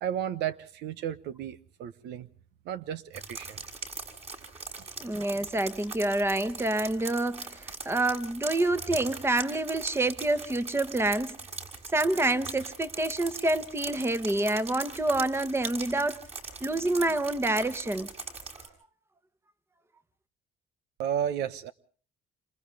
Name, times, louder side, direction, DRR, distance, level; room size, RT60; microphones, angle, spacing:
voice 1, 0.0-2.3 2.6-3.6 4.8-4.9 21.0-21.7, right 9 dB, 80° right, 1.2 m, -33 dB
sound 1, 3.1-18.7, right 4 dB, 40° right, 6.7 m, -41 dB
voice 2, 5.0-11.4 11.9-16.2 16.6-18.1, right 2 dB, 15° right, 1.3 m, -27 dB
28.5 x 27.0 x 3.5 m
cardioid pair, 110°, 17 cm